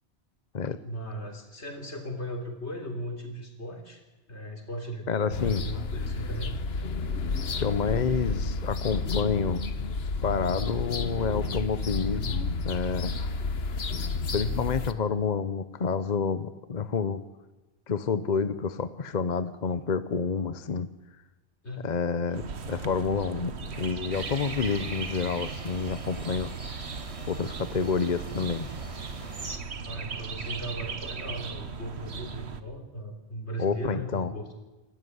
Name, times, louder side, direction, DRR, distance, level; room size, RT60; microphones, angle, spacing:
voice 1, 0.8-4.0 4.3-6.6 14.3-14.7 21.6-22.0 29.8-34.6, right 1 dB, 80° left, 4 dB, 3.8 m, -37 dB
voice 2, 5.1-5.6 7.6-9.6 10.2-12.4 12.6-13.1 14.3-17.2 17.9-20.9 21.8-26.5 27.3-28.7 33.6-34.3, left 5 dB, 45° left, 13 dB, 0.9 m, -28 dB
sound 1, 5.3-14.9, left 3 dB, 65° left, 1.3 m, -31 dB
sound 2, 22.3-32.6, right 5 dB, 75° right, 1.5 m, -38 dB
sound 3, 24.1-29.6, right 2 dB, 30° right, 1.5 m, -41 dB
27.5 x 13.5 x 9.6 m, 1.1 s
omnidirectional pair, 1.1 m